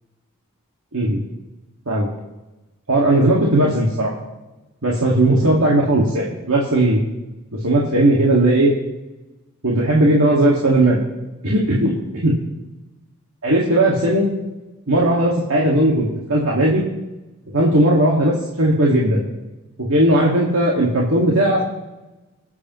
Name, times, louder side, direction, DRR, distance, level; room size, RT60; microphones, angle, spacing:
voice 1, 2.9-4.1 4.8-7.0 7.6-8.7 9.6-11.0 11.4-12.0 12.2-12.3 13.4-14.3 14.9-16.8 17.5-19.2 19.9-21.6, right 1 dB, 75° right, -4 dB, 1.9 m, -17 dB
24.0 x 8.3 x 3.1 m, 1.1 s
head